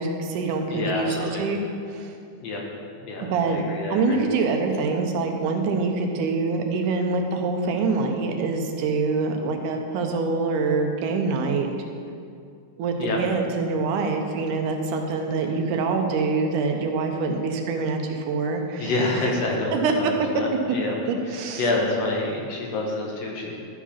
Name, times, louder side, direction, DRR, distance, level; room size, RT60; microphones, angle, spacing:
voice 1, 0.0-1.6 1.9-2.1 3.2-3.6 3.9-11.8 12.8-18.9 19.7-20.1 21.1-21.6, right 4 dB, 80° right, 4 dB, 2.3 m, -25 dB
voice 2, 0.7-1.4 2.4-2.6 3.0-4.2 13.0-13.2 18.8-21.0 21.3-23.6, left 2 dB, 65° left, -2 dB, 2.1 m, -27 dB
12.0 x 4.8 x 5.7 m, 2.4 s
omnidirectional pair, 3.6 m